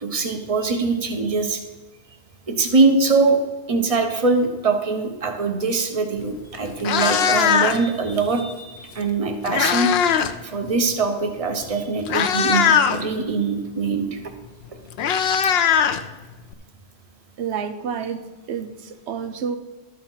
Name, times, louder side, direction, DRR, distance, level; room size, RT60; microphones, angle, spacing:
voice 1, 0.0-1.6 2.5-3.4 3.7-9.9 10.4-14.2 15.4-15.5, right 4 dB, 35° right, 5 dB, 1.0 m, -22 dB
Meow, 6.2-6.3 6.7-8.0 9.0-10.4 10.6-10.9 11.6-11.7 12.0-13.0 14.3-14.4 14.6-16.5, left 7 dB, 70° left, 0.8 m, -20 dB
voice 2, 17.4-19.6, right 7 dB, 85° right, 8 dB, 1.0 m, -29 dB
12.5 x 4.5 x 5.6 m, 1.1 s
omnidirectional pair, 1.1 m